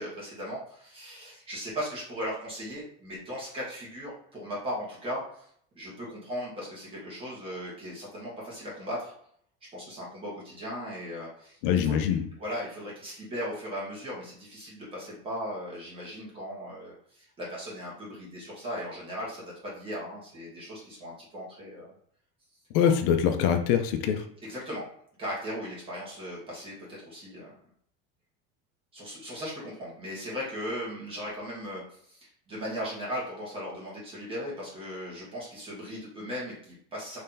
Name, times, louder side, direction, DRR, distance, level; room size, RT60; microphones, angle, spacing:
voice 1, 0.0-5.5 5.7-9.1 9.7-12.0 12.4-21.9 24.4-24.9 25.2-27.6 28.9-37.2, equal, 20° right, -5 dB, 1.3 m, -37 dB
voice 2, 11.6-12.3 22.7-24.2, left 8 dB, 70° left, 6 dB, 0.5 m, -24 dB
3.2 x 2.7 x 3.8 m, 0.64 s
cardioid pair, 180°, 29 cm